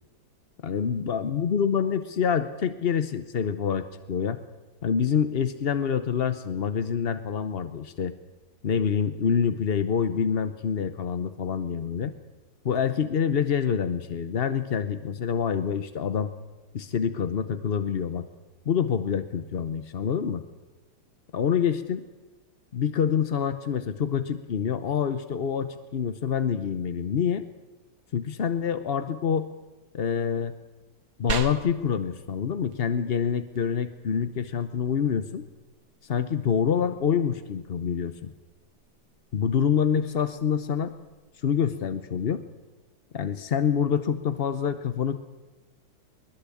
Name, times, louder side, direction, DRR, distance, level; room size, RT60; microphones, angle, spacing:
voice 1, 0.6-4.4 4.8-8.1 8.6-12.1 12.6-16.3 16.7-18.3 18.7-20.4 21.3-22.0 22.7-27.4 28.1-29.5 29.9-30.5 31.2-35.5 36.0-38.3 39.3-40.9 41.4-42.4 43.1-45.2, left 7 dB, 55° left, 10 dB, 0.6 m, -26 dB
sound 1, 31.3-41.3, right 6 dB, 75° right, 2.2 m, -42 dB
22.0 x 20.5 x 8.5 m, 1.2 s
omnidirectional pair, 2.2 m